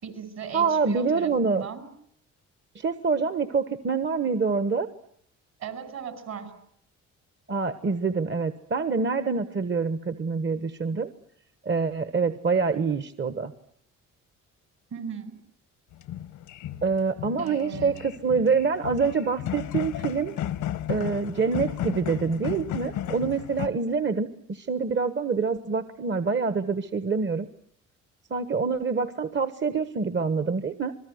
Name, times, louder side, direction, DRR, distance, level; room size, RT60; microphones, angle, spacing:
voice 1, 0.0-1.9 5.6-6.5 14.9-15.3 17.4-18.1, right 7 dB, 60° right, 9 dB, 5.6 m, -37 dB
voice 2, 0.5-1.6 2.7-4.9 7.5-11.1 11.6-13.5 16.8-20.4 20.9-27.5 28.3-30.9, right 5 dB, 40° right, 11 dB, 1.3 m, -26 dB
sound 1, 15.9-23.7, left 11 dB, 85° left, 1.3 m, -34 dB
28.0 x 20.5 x 9.3 m, 0.68 s
cardioid pair, 90°, 30 cm